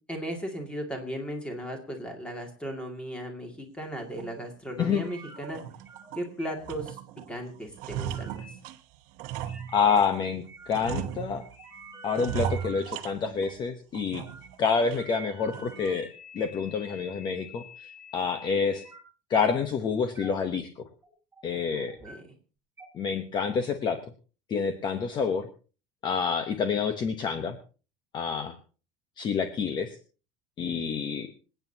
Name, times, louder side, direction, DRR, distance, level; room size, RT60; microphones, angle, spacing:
voice 1, 0.1-5.6 6.2-7.0 7.3-8.5 21.7-22.2, equal, 5° left, 2 dB, 2.3 m, -36 dB
sound 1, 4.2-4.3 4.8-4.9 5.4-6.3 6.6-7.3 7.6-10.2 10.7-11.6 12.1-13.6 13.9-14.6 14.9-15.0 15.5-15.9, right 9 dB, 60° right, 1.1 m, -36 dB
sound 2, 5.0-5.5 5.8-6.1 6.4-6.8 7.7-8.5 9.4-10.1 10.5-11.1 11.4-12.8 13.4-13.6 14.2-14.5 14.9-19.0 19.4-19.7 20.1-20.4 20.8-21.6 21.9-22.1 22.8-22.9, right 1 dB, 10° right, 4.4 m, -47 dB
voice 2, 9.7-11.4 12.0-14.2 14.6-16.1 16.3-18.8 19.3-20.8 21.4-22.0 22.9-24.0 24.5-25.5 26.0-27.6 28.1-28.6 29.2-30.0 30.6-31.3, left 5 dB, 25° left, 8 dB, 0.9 m, -28 dB
26.5 x 9.1 x 2.8 m, 0.36 s
cardioid pair, 170°, 16 cm